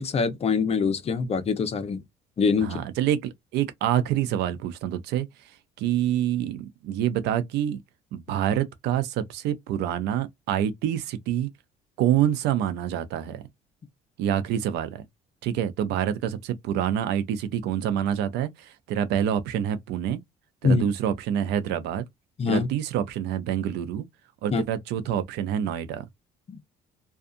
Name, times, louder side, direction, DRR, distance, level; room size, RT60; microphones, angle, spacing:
voice 1, 0.0-2.0 2.4-2.8 20.6-20.9 22.4-22.7 24.5-24.6 26.5-26.6, left 5 dB, 35° left, 0.7 m, -24 dB
voice 2, 2.6-5.3 5.8-7.8 8.1-11.5 12.0-13.4 14.2-15.0 15.4-20.2 20.6-22.0 22.5-24.0 24.4-26.0, right 10 dB, 85° right, 0.6 m, -26 dB
2.6 x 2.4 x 2.4 m
cardioid pair, 110°, 17 cm